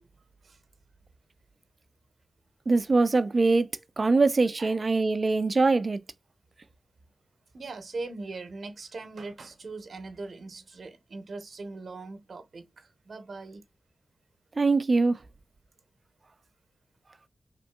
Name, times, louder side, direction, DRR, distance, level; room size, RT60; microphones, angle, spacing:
voice 1, 2.7-3.7 4.0-6.0 14.6-15.2, right 3 dB, 45° right, 0.4 m, -23 dB
voice 2, 7.5-13.6, right 3 dB, 65° right, 0.8 m, -40 dB
3.6 x 2.6 x 2.3 m
cardioid pair, 50°, 0 cm